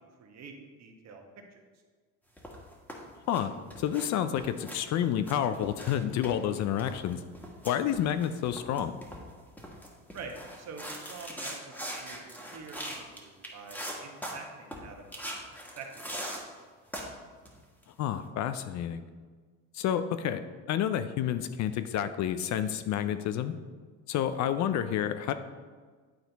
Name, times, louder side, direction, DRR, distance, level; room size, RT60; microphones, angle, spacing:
voice 1, 0.2-1.2 1.5-1.6 10.1-12.2 12.5-15.4 15.7-16.3, right 4 dB, 50° right, 3 dB, 1.3 m, -46 dB
sound 1, 2.4-3.4 3.7-4.1 4.4-6.0 6.2-13.2 13.4-14.3 14.7-14.8 15.1-16.4 16.9-17.1 17.4-17.8, equal, 5° left, 1.5 m, -41 dB
voice 2, 3.8-7.2 7.6-9.0 18.0-19.0 19.7-20.4 20.7-23.5 24.1-25.4, left 10 dB, 55° left, 11 dB, 0.5 m, -29 dB
9.4 x 4.2 x 4.0 m, 1.5 s
supercardioid pair, 105°, 35 cm